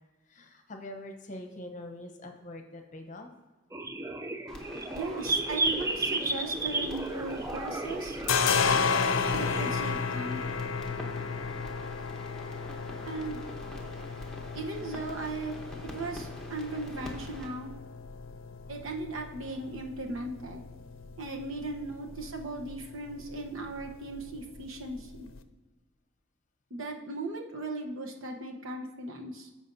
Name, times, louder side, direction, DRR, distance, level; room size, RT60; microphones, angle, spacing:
voice 1, 0.2-3.3, left 1 dB, 40° left, 5 dB, 0.8 m, -45 dB
sound 1, 3.7-9.8, right 2 dB, 15° right, 0.3 m, -33 dB
sound 2, 4.5-17.5, left 1 dB, 5° left, 0.9 m, -45 dB
voice 2, 4.9-8.2 9.3-10.4 13.0-13.4 14.5-15.5 15.9-17.7 18.7-20.6 21.2-25.3 26.7-29.5, right 2 dB, 85° right, 2 dB, 1.0 m, -37 dB
sound 3, 6.7-7.6 7.9-25.4, left 5 dB, 85° left, 0.5 m, -34 dB
13.5 x 5.0 x 2.7 m, 1.2 s
head